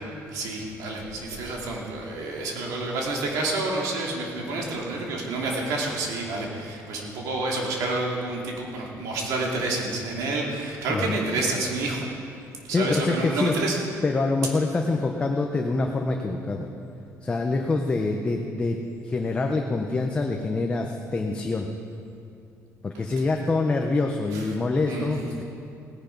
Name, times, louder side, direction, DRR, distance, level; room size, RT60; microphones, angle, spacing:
voice 1, 0.3-12.1 12.7-13.8 24.3-24.4 24.9-25.1, right 2 dB, 85° right, -1 dB, 2.8 m, -29 dB
voice 2, 10.9-11.2 12.7-13.5 14.0-16.7 17.2-21.7 22.8-25.4, left 3 dB, 20° left, 2 dB, 0.8 m, -25 dB
17.5 x 10.5 x 5.3 m, 2.6 s
cardioid pair, 155°, 6 cm